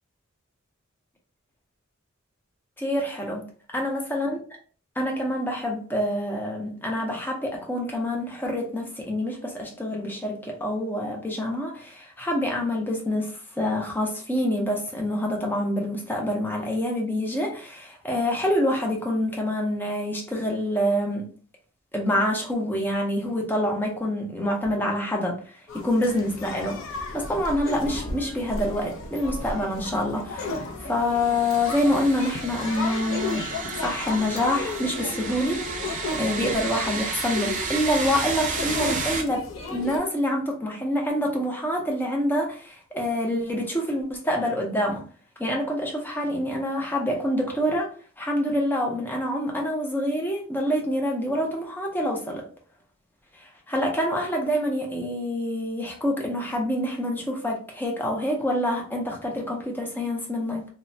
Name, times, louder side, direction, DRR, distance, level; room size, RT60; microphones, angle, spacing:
voice 1, 2.8-3.4 3.7-4.4 5.0-21.3 21.9-26.8 27.1-33.5 33.7-35.6 36.2-39.4 39.7-45.0 45.4-52.4 53.4-60.7, left 1 dB, 10° left, 0.5 m, -26 dB
sound 1, 25.7-40.0, left 2 dB, 65° left, 0.5 m, -34 dB
sound 2, 31.2-39.2, right 4 dB, 40° right, 0.5 m, -32 dB
3.1 x 2.1 x 2.5 m
head